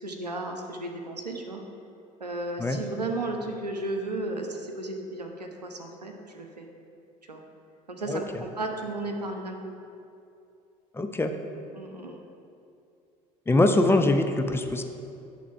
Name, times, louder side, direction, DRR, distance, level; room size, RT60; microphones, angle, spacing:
voice 1, 0.0-1.6 2.2-6.7 7.3-7.4 7.9-8.3 8.6-9.7 11.7-12.2, right 2 dB, 90° right, 3 dB, 0.6 m, -34 dB
voice 2, 8.1-8.4 10.9-11.3 13.5-14.8, left 2 dB, 10° left, 5 dB, 0.5 m, -23 dB
8.4 x 3.6 x 5.5 m, 2.5 s
figure-of-eight pair, 60°, 20 cm